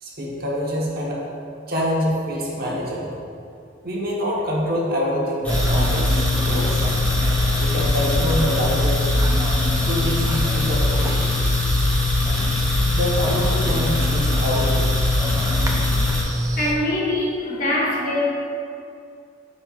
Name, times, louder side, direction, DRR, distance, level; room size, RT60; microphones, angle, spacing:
voice 1, 0.0-1.2 1.7-3.1 3.8-6.8 7.2-9.1 9.8-11.3 12.8-14.9, equal, 55° right, -3 dB, 1.1 m, -26 dB
sound 1, 5.4-16.2, left 2 dB, 10° left, 1.2 m, -21 dB
sound 2, 5.5-16.7, right 2 dB, 20° right, 0.5 m, -32 dB
voice 2, 16.6-18.2, left 1 dB, 45° left, -4 dB, 1.2 m, -23 dB
11.0 x 4.4 x 2.4 m, 2.5 s
head